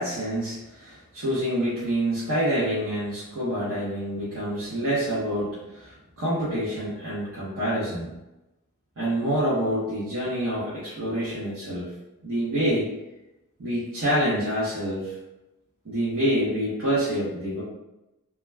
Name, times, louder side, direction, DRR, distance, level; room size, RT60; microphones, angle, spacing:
voice 1, 0.0-8.1 9.0-11.9 12.2-12.9 13.6-15.2 15.8-17.6, equal, 65° right, -10 dB, 0.8 m, -27 dB
2.3 x 2.2 x 3.2 m, 0.97 s
head